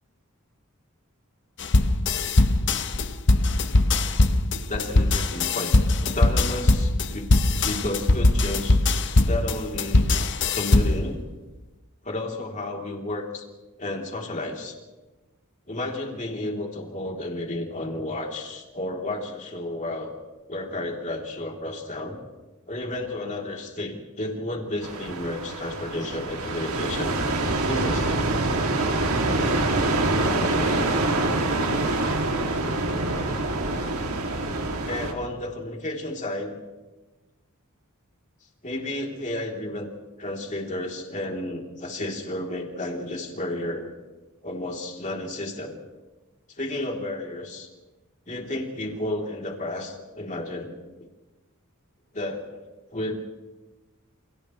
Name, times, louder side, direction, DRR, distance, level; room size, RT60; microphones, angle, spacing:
sound 1, 1.6-11.1, left 2 dB, 55° left, 1.1 m, -21 dB
voice 1, 4.6-5.7 6.0-7.3 7.6-8.8 9.3-10.1 10.5-11.2 12.0-13.5 13.8-14.7 15.7-20.1 20.5-22.2 22.7-27.1 27.6-28.4 30.2-30.9 34.9-36.6 38.6-39.9 40.2-43.9 44.4-45.8 46.6-47.7 48.3-50.7 52.1-52.6 52.9-53.1, left 1 dB, 35° left, 0 dB, 3.6 m, -32 dB
sound 2, 24.8-35.1, right 2 dB, 80° right, 2.8 m, -25 dB
30.0 x 27.5 x 3.3 m, 1.2 s
head